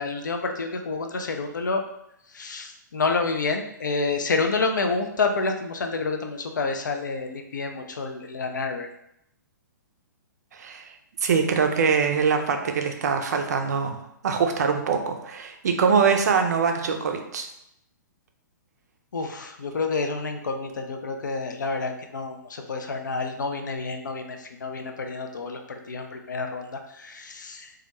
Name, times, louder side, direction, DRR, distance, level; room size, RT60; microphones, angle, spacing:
voice 1, 0.0-1.8 2.3-8.9 19.1-27.7, left 4 dB, 70° left, 4 dB, 0.4 m, -29 dB
voice 2, 10.5-10.9 11.2-17.5, right 5 dB, 55° right, 5 dB, 0.4 m, -23 dB
2.3 x 2.1 x 2.9 m, 0.78 s
figure-of-eight pair, 120°, 10 cm